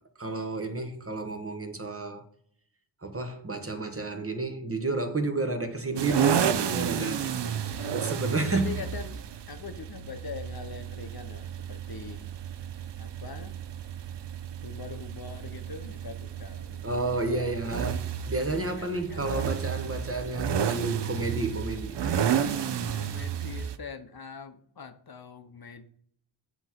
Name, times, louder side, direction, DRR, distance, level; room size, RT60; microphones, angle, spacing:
voice 1, 0.2-2.2 3.0-7.2 7.9-8.7 16.8-22.5, right 2 dB, 30° right, 1.0 m, -31 dB
sound 1, 6.0-23.8, right 8 dB, 60° right, 0.6 m, -32 dB
voice 2, 6.9-8.1 8.5-12.3 13.0-13.6 14.6-18.1 18.5-19.2 22.8-25.9, left 5 dB, 50° left, 0.7 m, -43 dB
7.8 x 3.0 x 5.7 m
wide cardioid pair, 100°, 49 cm